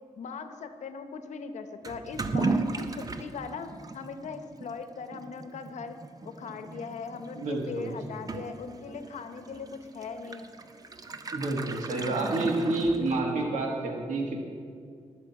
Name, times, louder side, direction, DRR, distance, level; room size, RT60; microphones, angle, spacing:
voice 1, 0.2-5.9 6.4-10.5, left 5 dB, 75° left, 8 dB, 0.9 m, -40 dB
Toilet flush / Liquid, 1.8-13.5, right 3 dB, 30° right, 0.6 m, -36 dB
voice 2, 7.4-7.9 11.3-14.4, right 2 dB, 85° right, 0 dB, 1.8 m, -29 dB
19.5 x 6.7 x 4.8 m, 2.2 s
wide cardioid pair, 120°, 12 cm